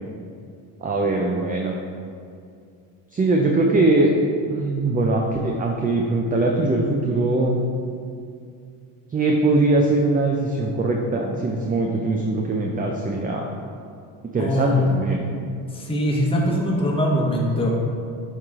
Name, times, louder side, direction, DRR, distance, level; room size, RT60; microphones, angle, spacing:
voice 1, 0.8-1.8 3.1-4.1 4.5-7.6 9.1-13.4 14.3-15.4, right 2 dB, 20° right, 0 dB, 0.5 m, -21 dB
voice 2, 14.4-14.9 15.7-17.7, equal, 10° left, -3 dB, 1.1 m, -22 dB
8.9 x 3.2 x 3.6 m, 2.3 s
supercardioid pair, 90°, 43 cm